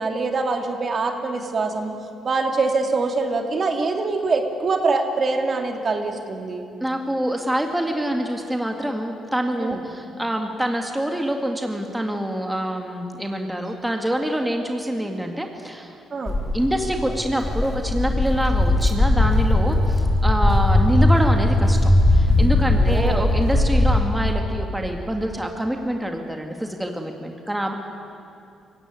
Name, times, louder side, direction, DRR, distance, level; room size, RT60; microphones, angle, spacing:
voice 1, 0.0-1.9 2.2-6.6 9.6-9.8 16.1-16.4 22.7-23.3, right 3 dB, 45° right, 4 dB, 2.5 m, -24 dB
voice 2, 6.8-16.0 16.5-27.7, right 1 dB, 5° right, 3 dB, 1.9 m, -26 dB
Walk footsteps, 16.3-24.0, left 1 dB, 20° left, 3.8 m, -19 dB
24.5 x 15.5 x 9.6 m, 2.6 s
cardioid pair, 90°, 0 cm